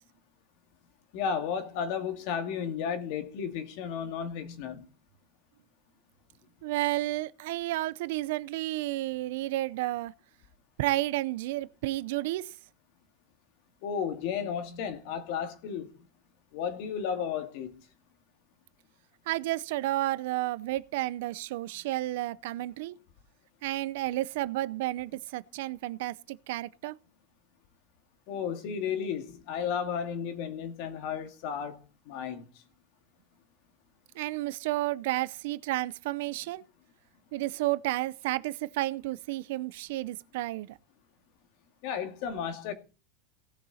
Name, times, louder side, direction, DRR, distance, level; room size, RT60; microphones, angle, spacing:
voice 1, 1.1-4.9 13.8-15.9 16.5-17.8 28.3-31.8 32.1-32.5 41.8-42.7, left 7 dB, 45° left, 2.3 m, -33 dB
voice 2, 6.6-10.1 10.8-12.5 19.3-22.9 23.6-26.9 34.2-36.6 37.3-40.7, right 17 dB, 60° right, 0.5 m, -31 dB
18.0 x 6.9 x 4.2 m
supercardioid pair, 175°, 0 cm